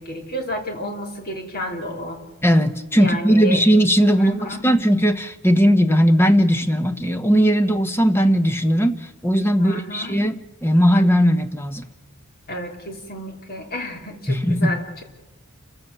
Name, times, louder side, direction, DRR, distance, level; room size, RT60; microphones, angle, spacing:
voice 1, 0.0-2.2 2.9-3.6 4.1-4.6 9.6-10.2 12.5-15.0, left 1 dB, 45° left, 4 dB, 3.3 m, -31 dB
voice 2, 2.4-11.9 14.3-14.8, equal, 10° left, 9 dB, 1.1 m, -18 dB
29.0 x 15.5 x 7.0 m, 1.1 s
head